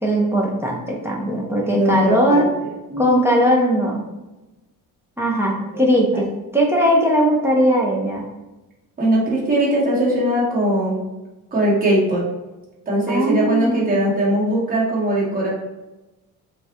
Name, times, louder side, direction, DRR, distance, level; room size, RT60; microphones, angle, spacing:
voice 1, 0.0-2.5 3.0-4.0 5.2-6.3 6.5-8.3 13.1-14.0, equal, 10° right, -2 dB, 0.3 m, -19 dB
voice 2, 1.6-2.5 2.9-3.3 6.1-6.3 9.0-11.0 11.5-12.2 12.9-15.5, right 1 dB, 25° right, -5 dB, 1.1 m, -20 dB
5.6 x 2.1 x 2.8 m, 1.1 s
cardioid pair, 170°, 34 cm